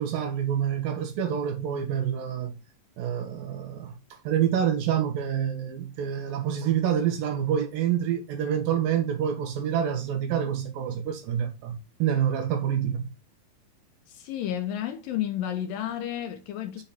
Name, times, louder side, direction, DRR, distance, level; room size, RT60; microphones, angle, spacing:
voice 1, 0.0-2.6 3.0-4.0 4.2-13.1, right 9 dB, 70° right, 3.0 m, -27 dB
voice 2, 14.1-16.8, left 11 dB, 75° left, 2.2 m, -31 dB
7.3 x 3.9 x 4.1 m
omnidirectional pair, 4.4 m